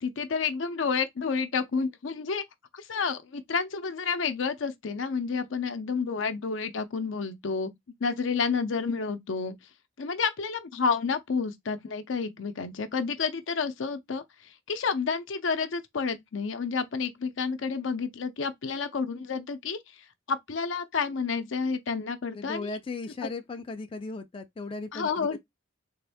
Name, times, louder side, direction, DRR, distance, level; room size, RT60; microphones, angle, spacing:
voice 1, 0.0-2.4 2.7-7.7 8.0-9.6 10.0-19.8 20.3-22.7 23.2-23.3 24.9-25.4, left 5 dB, 75° left, 0.6 m, -30 dB
voice 2, 22.3-25.4, left 3 dB, 25° left, 0.4 m, -37 dB
3.5 x 2.5 x 3.4 m
head